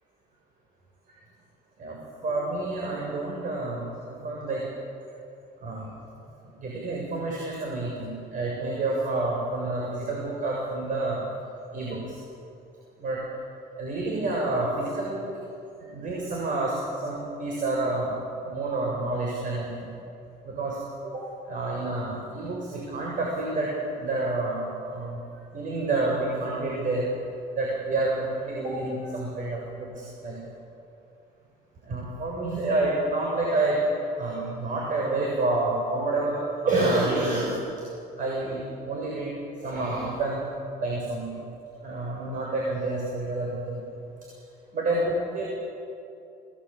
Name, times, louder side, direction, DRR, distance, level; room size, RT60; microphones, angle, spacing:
voice 1, 2.2-3.9 4.2-4.6 5.6-5.9 6.6-11.2 11.7-12.2 13.0-13.2 13.8-15.2 15.9-18.1 18.4-19.9 20.4-20.8 21.0-21.2 21.5-25.2 25.5-27.1 27.5-30.4 31.9-33.8 34.2-37.6 38.2-39.3 39.6-40.4 40.8-41.4 41.8-43.8 44.7-45.4, right 2 dB, 50° right, -3 dB, 7.0 m, -28 dB
26.0 x 20.0 x 8.9 m, 2.6 s
cardioid pair, 110°, 17 cm